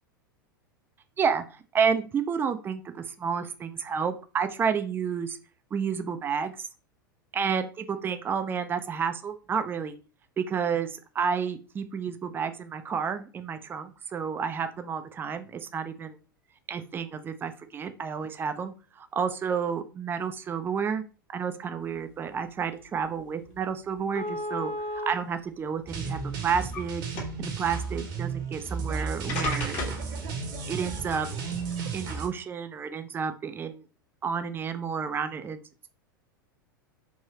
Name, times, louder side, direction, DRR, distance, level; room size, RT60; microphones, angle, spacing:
voice 1, 1.7-5.4 5.7-6.6 7.3-9.9 10.4-16.1 16.7-21.0 21.3-27.0 27.4-29.9 30.7-31.3 31.9-33.8 34.2-35.6, right 6 dB, 20° right, 9 dB, 0.4 m, -30 dB
sound 1, 23.1-23.2 23.5-23.6 24.2-25.1 26.0-26.8 27.1-27.5 28.7-28.8 29.3-30.1, left 2 dB, 50° left, 1.2 m, -33 dB
sound 2, 25.9-32.3, right 5 dB, 40° right, 0.8 m, -33 dB
3.3 x 2.6 x 2.8 m, 0.35 s
figure-of-eight pair, 90°, 11 cm